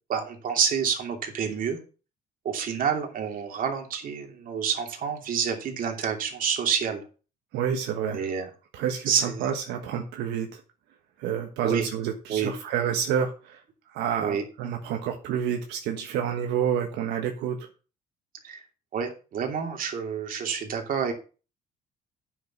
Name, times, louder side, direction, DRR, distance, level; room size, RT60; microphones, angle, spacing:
voice 1, 0.1-1.8 2.4-7.0 8.1-8.5 9.1-9.5 11.6-11.8 12.3-12.5 14.1-14.4 18.4-18.6 18.9-21.1, right 7 dB, 55° right, 3 dB, 2.8 m, -28 dB
voice 2, 7.5-8.2 8.7-10.6 11.2-13.6 13.9-17.7, right 8 dB, 85° right, 3 dB, 1.4 m, -29 dB
9.2 x 6.6 x 6.1 m, 0.35 s
cardioid pair, 110°, 17 cm